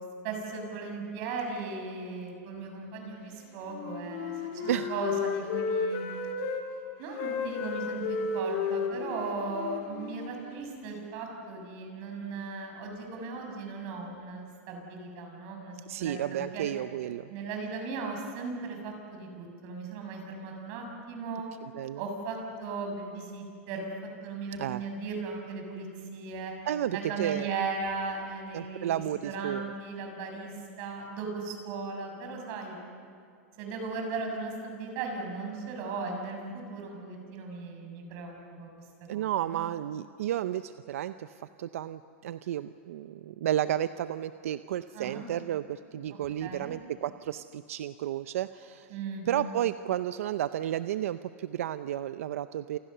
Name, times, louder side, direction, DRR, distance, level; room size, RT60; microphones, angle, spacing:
voice 1, 0.2-6.0 7.0-16.6 17.3-21.5 22.0-23.9 24.2-25.9 26.1-26.5 26.9-28.9 29.2-30.5 30.8-32.8 33.6-38.7 39.1-39.6 44.9-45.2 46.1-46.7 48.9-49.2, right 4 dB, 45° right, 2 dB, 6.8 m, -37 dB
Wind instrument woodwind instrument, 3.7-6.7 7.1-11.0, left 5 dB, 45° left, 3.6 m, -33 dB
voice 2, 15.9-17.3 21.6-22.0 24.6-24.8 26.7-27.5 28.5-29.7 39.1-48.9 49.3-52.8, right 11 dB, 80° right, 12 dB, 0.6 m, -32 dB
29.5 x 28.0 x 6.8 m, 2.3 s
supercardioid pair, 155°, 7 cm